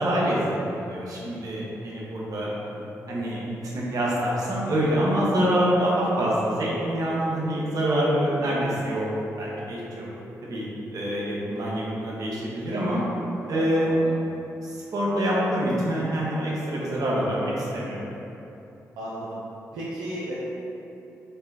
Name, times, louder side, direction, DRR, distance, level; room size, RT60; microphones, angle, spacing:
voice 1, 0.0-2.5 3.1-9.1 9.4-10.1 10.4-10.6 10.9-13.0 13.5-14.2 14.6-18.0, equal, 65° right, -6 dB, 1.1 m, -26 dB
voice 2, 13.5-14.0 19.0-19.4 19.7-20.3, right 1 dB, 90° right, -9 dB, 0.6 m, -35 dB
5.4 x 2.2 x 4.1 m, 2.9 s
supercardioid pair, 50°, 7 cm